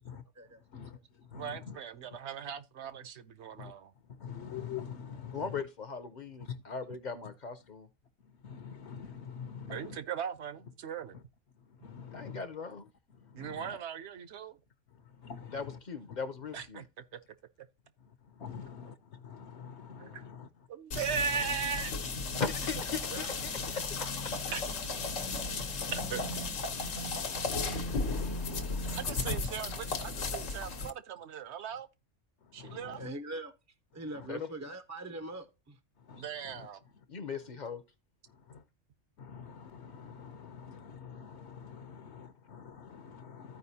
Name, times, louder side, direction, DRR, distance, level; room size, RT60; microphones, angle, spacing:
voice 1, 0.0-1.8 2.1-2.2 3.5-5.6 6.4-6.7 7.2-7.3 8.2-10.0 11.1-11.2 11.5-12.4 13.1-13.8 14.9-15.8 16.0-16.2 18.0-20.7 21.3-21.5 25.8-26.3 27.1-27.4 27.7-29.4 32.4-33.1 33.9-34.3 36.0-36.7 36.9-37.0 37.4-37.5 38.3-38.7 39.2-43.6, left 7 dB, 65° left, 0.9 m, -47 dB
voice 2, 1.3-3.9 9.7-11.2 13.3-14.6 16.5-16.8 17.1-17.2 19.9-20.2 20.7-22.0 24.5-24.6 25.9-26.2 27.1-27.2 29.0-31.9 32.5-33.0 36.1-36.8, right 7 dB, 65° right, 0.9 m, -38 dB
voice 3, 5.3-7.9 12.2-12.9 15.5-16.8 22.4-24.3 34.2-34.5 37.1-37.8, left 5 dB, 50° left, 0.6 m, -39 dB
sound 1, 20.9-30.9, left 3 dB, 90° left, 1.4 m, -35 dB
voice 4, 33.0-33.5 33.9-35.5, right 2 dB, 25° right, 0.3 m, -41 dB
14.5 x 4.8 x 2.7 m
omnidirectional pair, 1.3 m